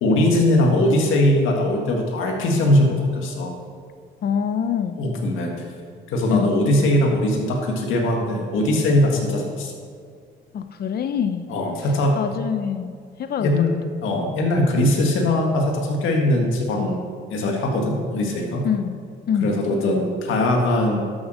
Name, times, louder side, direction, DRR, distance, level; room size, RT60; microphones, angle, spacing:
voice 1, 0.0-3.5 5.0-5.5 6.1-9.7 11.5-12.2 13.4-13.7 14.0-17.0 17.3-18.7 19.4-21.0, left 1 dB, 85° left, 1 dB, 1.8 m, -20 dB
voice 2, 4.2-5.0 6.3-6.5 10.5-11.5 11.8-13.6 18.6-19.0 19.3-19.5, left 8 dB, 50° left, 9 dB, 0.6 m, -25 dB
12.5 x 7.2 x 6.3 m, 2.1 s
cardioid pair, 90°, 20 cm